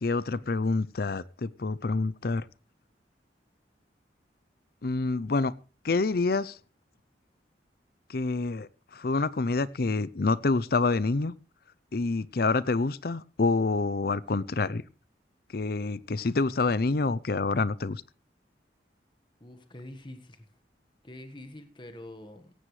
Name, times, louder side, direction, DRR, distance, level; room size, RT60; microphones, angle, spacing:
voice 1, 0.0-2.4 4.8-5.5 5.8-6.6 8.1-11.3 11.9-14.8 15.5-18.0, left 3 dB, 55° left, 19 dB, 0.6 m, -27 dB
voice 2, 19.4-20.5 21.0-22.5, left 1 dB, 25° left, 7 dB, 1.5 m, -45 dB
17.5 x 15.0 x 3.3 m, 0.33 s
head